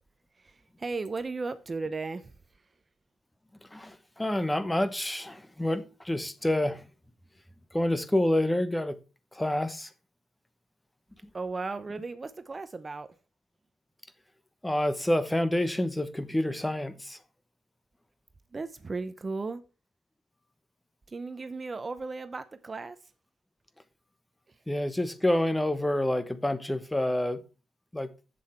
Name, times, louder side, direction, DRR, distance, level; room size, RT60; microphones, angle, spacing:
voice 1, 0.3-2.7 11.3-13.1 18.5-19.6 21.1-23.1 24.5-24.6, right 3 dB, 30° right, 0.7 m, -36 dB
voice 2, 3.6-6.9 7.7-9.0 9.3-9.9 14.6-17.2 24.7-27.4 27.9-28.1, left 1 dB, 10° left, 0.9 m, -28 dB
7.8 x 7.1 x 4.4 m
cardioid pair, 90°, 0 cm